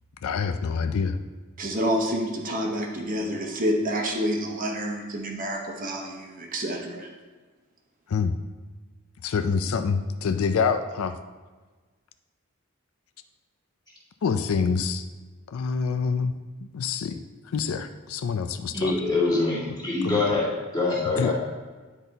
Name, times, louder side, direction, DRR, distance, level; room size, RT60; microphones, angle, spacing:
voice 1, 0.2-1.2 8.1-8.3 9.2-11.2 14.2-15.1 15.5-16.3 16.6-17.2 17.5-18.9 20.0-20.2 21.2-21.3, left 5 dB, 75° left, 9 dB, 0.4 m, -26 dB
voice 2, 1.6-7.1, equal, 40° right, 1 dB, 0.8 m, -28 dB
voice 3, 18.7-21.3, left 3 dB, 20° left, -6 dB, 1.8 m, -24 dB
9.9 x 4.0 x 4.0 m, 1.3 s
head